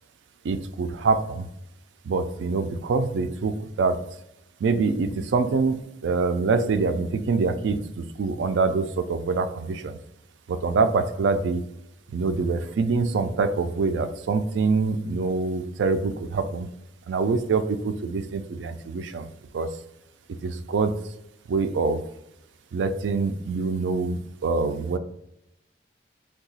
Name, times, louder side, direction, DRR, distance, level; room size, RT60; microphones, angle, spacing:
voice 1, 0.4-1.5 2.1-4.0 4.6-10.0 10.5-11.6 12.1-16.7 17.1-19.3 19.5-19.7 20.4-21.0 21.5-22.0 22.7-25.0, right 4 dB, 85° right, 9 dB, 0.4 m, -25 dB
2.8 x 2.3 x 4.0 m, 0.83 s
head